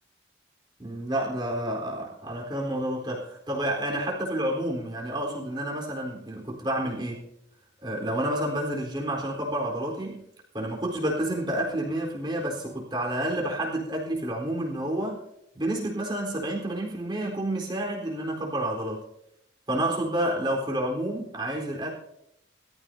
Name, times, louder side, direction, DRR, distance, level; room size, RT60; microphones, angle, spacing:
voice 1, 0.8-7.2 7.8-10.2 10.5-15.2 15.5-19.0 19.7-21.9, right 1 dB, 25° right, -1 dB, 4.1 m, -29 dB
22.5 x 14.5 x 2.8 m, 0.78 s
head